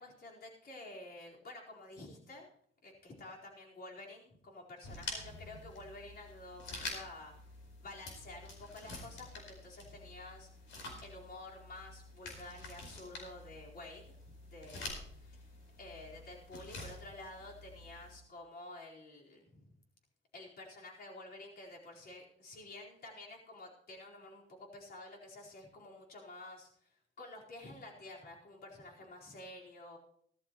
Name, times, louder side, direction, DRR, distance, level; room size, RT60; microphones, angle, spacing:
voice 1, 0.0-2.5 2.8-7.3 7.8-19.8 20.3-30.0, left 2 dB, 50° left, -3 dB, 4.4 m, -51 dB
sound 1, 4.8-18.2, left 2 dB, 75° left, 4.8 m, -48 dB
17.0 x 13.5 x 3.1 m, 0.65 s
cardioid pair, 90°, 20 cm